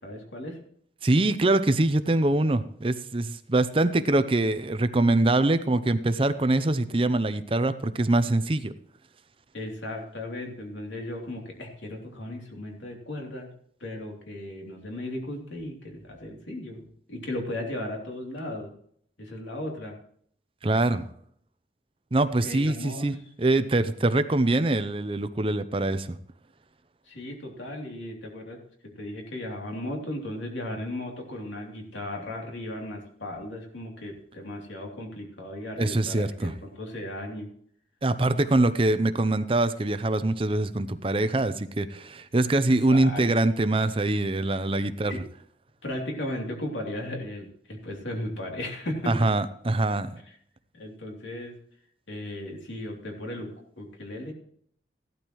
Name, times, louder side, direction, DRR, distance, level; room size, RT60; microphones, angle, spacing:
voice 1, 0.0-0.6 9.5-13.5 13.8-18.7 19.2-19.9 22.4-23.2 27.1-28.6 29.0-37.5 42.7-43.3 45.1-45.3 45.8-49.1 50.7-51.5 52.1-54.3, left 1 dB, 90° left, 0 dB, 3.1 m, -36 dB
voice 2, 1.0-8.7 20.6-21.0 22.1-26.2 35.8-36.5 38.0-45.2 49.1-50.1, right 2 dB, 30° right, 12 dB, 0.6 m, -24 dB
16.0 x 12.0 x 3.1 m, 0.64 s
head